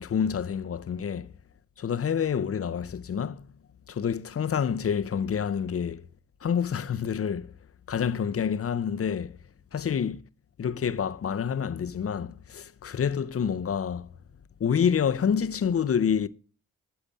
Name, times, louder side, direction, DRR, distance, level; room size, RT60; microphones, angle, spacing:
voice 1, 0.0-1.3 1.8-3.5 3.9-6.1 6.4-7.5 7.9-9.4 9.7-10.2 10.6-14.1 14.6-16.3, left 7 dB, 40° left, 0.7 m, -28 dB
8.4 x 7.1 x 8.3 m
supercardioid pair, 45°, 36 cm